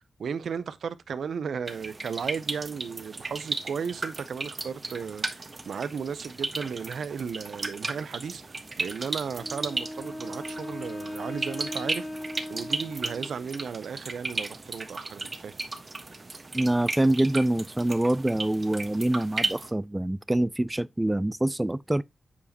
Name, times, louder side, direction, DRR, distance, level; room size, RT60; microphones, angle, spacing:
voice 1, 0.2-12.1 12.5-15.5, right 6 dB, 80° right, 0.5 m, -35 dB
sound 1, 1.7-19.7, right 3 dB, 40° right, 1.2 m, -35 dB
Wind instrument woodwind instrument, 9.4-13.6, left 1 dB, 20° left, 1.2 m, -38 dB
voice 2, 16.5-22.0, right 1 dB, 15° right, 0.3 m, -25 dB
8.3 x 4.9 x 2.8 m
cardioid pair, 60°, 0 cm